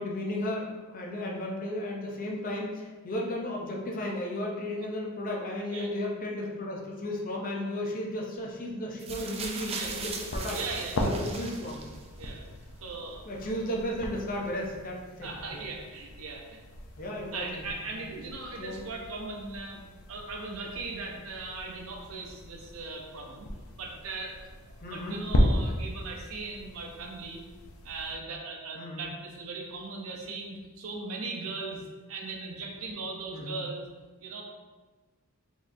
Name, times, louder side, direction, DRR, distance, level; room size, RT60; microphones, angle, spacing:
voice 1, 0.0-10.6 11.0-11.8 13.3-15.6 17.0-17.6 17.9-18.0 18.6-18.8 24.8-25.2 28.7-29.1 33.3-33.6, left 1 dB, 40° left, -1 dB, 0.6 m, -34 dB
sound 1, 9.0-12.2 13.1-13.2, right 4 dB, 30° right, 0.3 m, -38 dB
sound 2, 9.8-28.2, equal, 85° left, 0.6 m, -36 dB
voice 2, 10.5-11.1 12.2-12.5 12.8-13.2 15.2-16.6 17.3-23.5 23.8-24.5 24.8-27.4 27.8-33.9 34.2-34.4, right 3 dB, 75° right, 0 dB, 0.6 m, -39 dB
4.0 x 3.0 x 2.6 m, 1.3 s
head